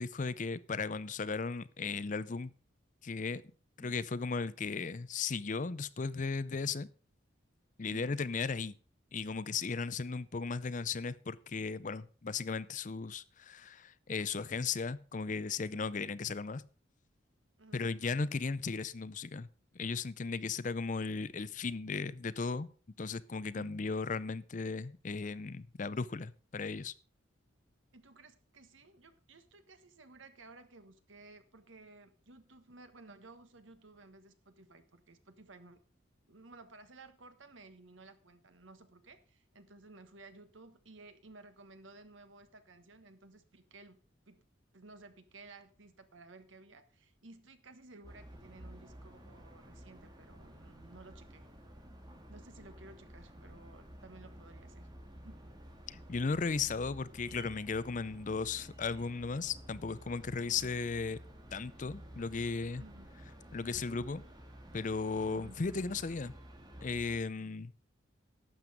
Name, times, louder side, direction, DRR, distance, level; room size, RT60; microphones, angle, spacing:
voice 1, 0.0-2.5 3.0-3.4 3.8-6.9 7.8-8.8 9.1-16.6 17.7-19.5 19.7-22.7 23.0-26.9 55.9-61.2 61.5-62.8 63.5-64.2 64.7-66.3 66.8-67.7, left 4 dB, 40° left, 0.5 m, -36 dB
voice 2, 7.9-8.2 15.7-15.8 17.6-17.9 23.5-23.8 27.9-35.8 36.3-44.0 44.3-44.5 44.7-51.5 52.3-54.9 55.2-55.5 60.5-60.7 62.8-63.1 65.3-65.6, right 3 dB, 80° right, 1.4 m, -56 dB
sound 1, 48.0-67.2, equal, 20° right, 1.9 m, -52 dB
12.0 x 7.8 x 5.1 m
head